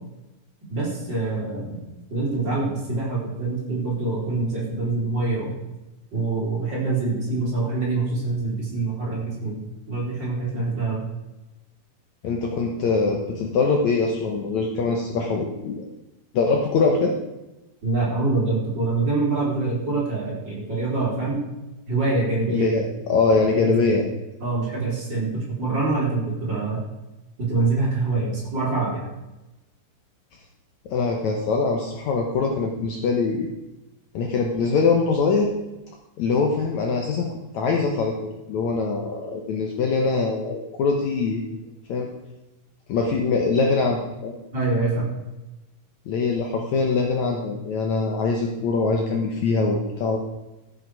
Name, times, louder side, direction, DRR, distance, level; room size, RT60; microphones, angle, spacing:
voice 1, 0.7-5.5 6.1-9.6 9.9-11.0 17.8-21.4 21.9-22.7 23.6-23.7 24.4-26.8 27.4-29.0 44.5-45.1, right 3 dB, 30° right, -5 dB, 4.0 m, -25 dB
voice 2, 12.2-15.8 16.3-17.2 22.5-24.1 30.9-33.5 34.1-35.5 36.2-37.3 37.5-41.5 41.9-42.1 42.9-44.3 46.1-50.2, left 4 dB, 65° left, 1 dB, 2.0 m, -23 dB
15.0 x 8.2 x 4.8 m, 1.0 s
omnidirectional pair, 4.1 m